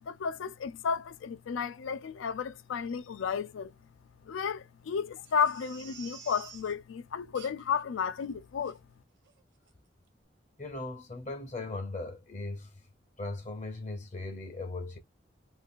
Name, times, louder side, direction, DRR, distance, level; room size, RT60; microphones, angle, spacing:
voice 1, 0.0-3.7 4.3-8.8, left 6 dB, 90° left, 0.4 m, -33 dB
Crying sobbing, 5.2-6.7 7.3-7.8 8.2-8.3 8.6-8.8 9.2-9.4 9.7-9.8, right 6 dB, 70° right, 0.9 m, -50 dB
voice 2, 10.6-12.8 13.2-15.0, left 2 dB, 35° left, 0.6 m, -38 dB
2.6 x 2.3 x 3.5 m
head